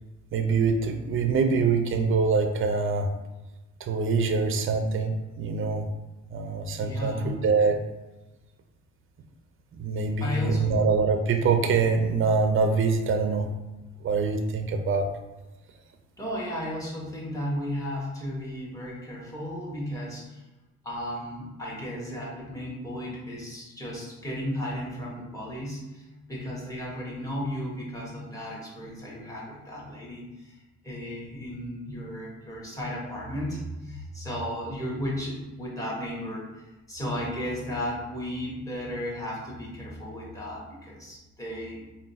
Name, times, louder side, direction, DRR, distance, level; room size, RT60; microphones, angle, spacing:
voice 1, 0.3-3.1 3.8-5.9 6.3-7.8 9.7-13.5 14.0-15.1, right 4 dB, 45° right, 6 dB, 0.5 m, -24 dB
voice 2, 6.8-7.4 10.2-10.8 16.2-20.4 20.8-30.6 30.8-41.8, equal, 10° left, -5 dB, 1.4 m, -34 dB
3.7 x 2.3 x 3.9 m, 1.1 s
cardioid pair, 90°, 30 cm